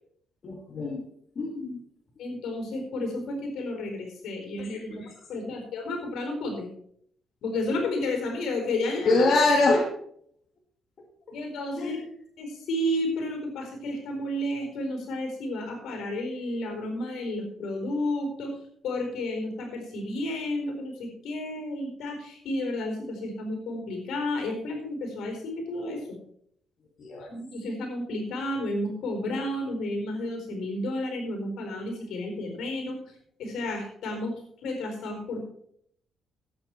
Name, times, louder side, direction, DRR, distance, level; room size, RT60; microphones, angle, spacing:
voice 1, 0.4-1.1 1.4-1.8 4.7-4.8 5.5-5.6 9.0-9.9 11.3-11.4 11.8-12.1 27.0-27.3, left 2 dB, 50° left, -1 dB, 2.4 m, -24 dB
voice 2, 2.2-5.0 5.3-6.7 7.4-9.2 11.3-12.0 12.4-18.5 18.8-26.2 27.2-35.5, left 1 dB, 75° left, 4 dB, 4.4 m, -32 dB
13.0 x 8.8 x 4.6 m, 0.67 s
cardioid pair, 90°, 0 cm